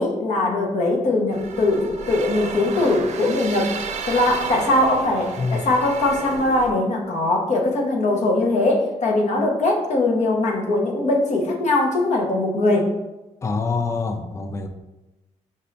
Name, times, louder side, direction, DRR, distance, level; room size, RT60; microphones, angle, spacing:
voice 1, 0.0-3.7 4.0-12.9, left 2 dB, 70° left, 1 dB, 0.9 m, -21 dB
sound 1, 1.3-6.7, right 5 dB, 65° right, 0.5 m, -33 dB
voice 2, 13.4-14.7, left 4 dB, 25° left, 6 dB, 0.4 m, -25 dB
5.2 x 2.7 x 3.3 m, 1.0 s
cardioid pair, 90°, 13 cm